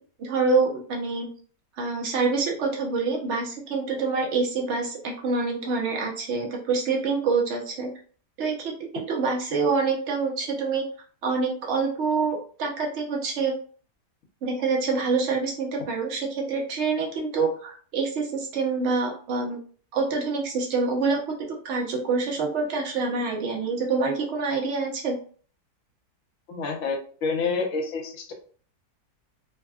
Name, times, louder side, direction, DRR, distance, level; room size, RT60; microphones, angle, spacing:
voice 1, 0.2-1.3 1.8-7.9 8.4-10.8 11.2-13.5 14.4-19.6 19.9-21.3 21.6-25.2, right 4 dB, 55° right, -1 dB, 0.9 m, -26 dB
voice 2, 26.5-28.3, left 4 dB, 55° left, 1 dB, 0.9 m, -28 dB
3.4 x 2.2 x 2.3 m, 0.43 s
omnidirectional pair, 1.8 m